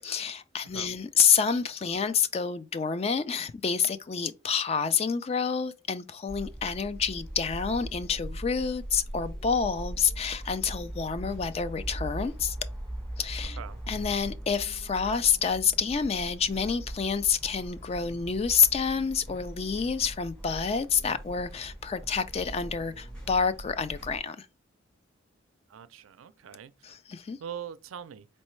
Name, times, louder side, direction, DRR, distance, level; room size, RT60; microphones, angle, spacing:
voice 1, 0.0-12.6 13.2-13.6 13.9-24.5 26.8-27.4, left 6 dB, 30° left, 0.3 m, -28 dB
voice 2, 0.6-0.9 13.6-13.8 25.7-26.9 27.4-28.3, right 8 dB, 85° right, 0.4 m, -42 dB
sound 1, 6.3-24.2, right 1 dB, 5° left, 1.3 m, -40 dB
4.3 x 3.2 x 3.1 m
head